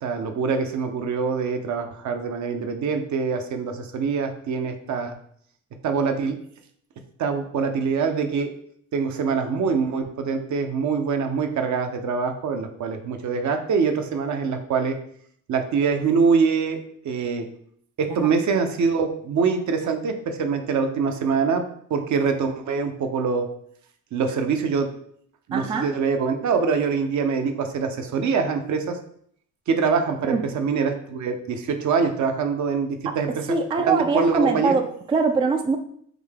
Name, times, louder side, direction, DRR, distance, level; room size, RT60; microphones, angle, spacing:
voice 1, 0.0-5.1 5.8-6.4 7.2-8.5 8.9-15.0 15.5-16.8 17.0-17.5 18.0-21.6 21.9-23.5 24.1-24.9 25.5-29.0 29.7-34.8, right 5 dB, 55° right, 5 dB, 0.7 m, -24 dB
voice 2, 25.5-25.9 30.2-30.5 33.5-35.8, right 4 dB, 15° right, 6 dB, 0.3 m, -23 dB
3.8 x 2.7 x 3.4 m, 0.64 s
supercardioid pair, 70°, 34 cm